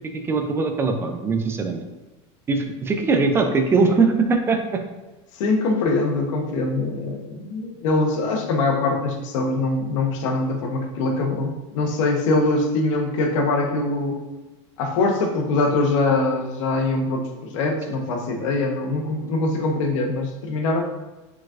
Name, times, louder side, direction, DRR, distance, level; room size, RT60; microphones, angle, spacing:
voice 1, 0.1-1.9 2.5-4.8, right 4 dB, 15° right, 5 dB, 0.4 m, -21 dB
voice 2, 5.3-14.2 14.8-20.8, left 2 dB, 85° left, 2 dB, 0.9 m, -23 dB
5.0 x 4.0 x 2.4 m, 1.1 s
supercardioid pair, 150°, 16 cm